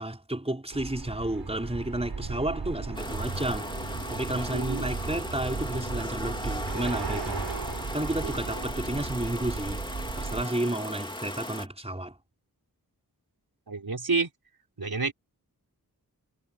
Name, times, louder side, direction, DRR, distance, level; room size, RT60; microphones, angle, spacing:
voice 1, 0.0-3.8 4.1-7.5 7.9-9.8 10.2-12.2, right 1 dB, 15° right, 4.6 m, -32 dB
sound 1, 0.7-10.4, right 4 dB, 85° right, 4.0 m, -36 dB
sound 2, 2.9-11.7, left 1 dB, 10° left, 3.4 m, -37 dB
voice 2, 4.5-4.9 8.2-8.3 13.7-14.3 14.8-15.1, right 4 dB, 70° right, 4.8 m, -29 dB
wide cardioid pair, 60°, 38 cm